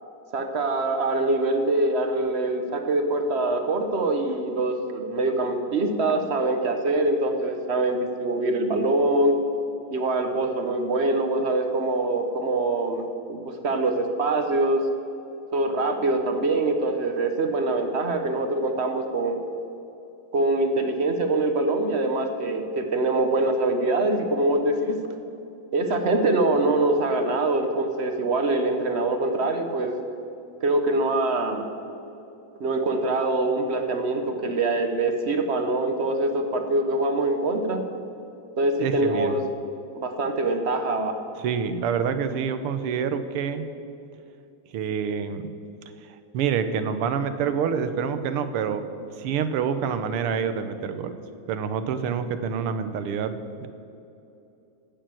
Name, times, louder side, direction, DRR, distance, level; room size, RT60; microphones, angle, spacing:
voice 1, 0.3-9.4 9.9-14.8 15.5-19.4 20.3-25.0 25.7-30.0 30.6-31.7 32.6-37.8 38.6-39.4 39.9-41.1, right 2 dB, 45° right, 6 dB, 0.8 m, -24 dB
voice 2, 38.8-39.4 41.4-43.6 44.7-45.5 46.0-48.9 49.2-51.1 51.5-53.7, right 7 dB, 90° right, 10 dB, 1.7 m, -27 dB
16.5 x 6.9 x 7.6 m, 2.8 s
omnidirectional pair, 2.4 m